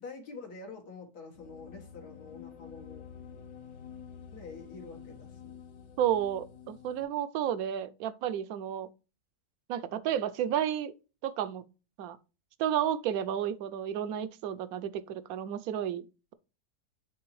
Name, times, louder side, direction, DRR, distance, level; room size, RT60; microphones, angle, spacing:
voice 1, 0.0-3.0 4.3-5.5, left 4 dB, 90° left, 2.0 m, -46 dB
sound 1, 1.3-7.0, left 8 dB, 75° left, 1.2 m, -49 dB
voice 2, 6.0-8.9 9.7-10.9 11.2-11.6 12.0-12.2 12.6-16.1, right 10 dB, 75° right, 1.0 m, -31 dB
9.4 x 3.8 x 3.1 m
omnidirectional pair, 1.6 m